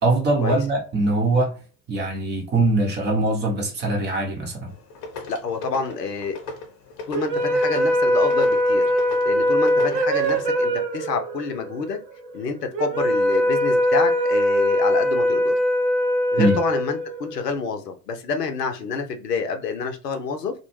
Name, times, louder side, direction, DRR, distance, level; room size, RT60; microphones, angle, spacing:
voice 1, 0.0-1.5 1.9-4.7 16.4-16.6, right 2 dB, 20° right, 0.7 m, -22 dB
sound 1, 4.7-10.3, left 3 dB, 40° left, 0.8 m, -38 dB
voice 2, 5.3-6.3 7.1-8.9 9.3-12.0 12.3-15.5 16.3-20.5, left 5 dB, 80° left, 0.7 m, -28 dB
sound 2, 7.1-17.5, equal, 80° right, 0.7 m, -21 dB
2.1 x 2.0 x 3.1 m
figure-of-eight pair, 75°, 48 cm